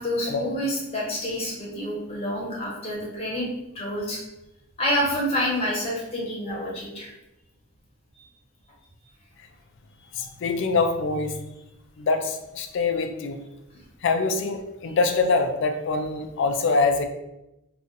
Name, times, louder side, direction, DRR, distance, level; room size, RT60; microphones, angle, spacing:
voice 1, 0.0-3.5 3.7-4.2 4.8-7.1, equal, 30° left, -4 dB, 0.9 m, -28 dB
voice 2, 10.1-11.4 12.0-13.4 14.0-17.1, left 4 dB, 60° left, 6 dB, 0.3 m, -24 dB
2.5 x 2.4 x 3.8 m, 0.92 s
head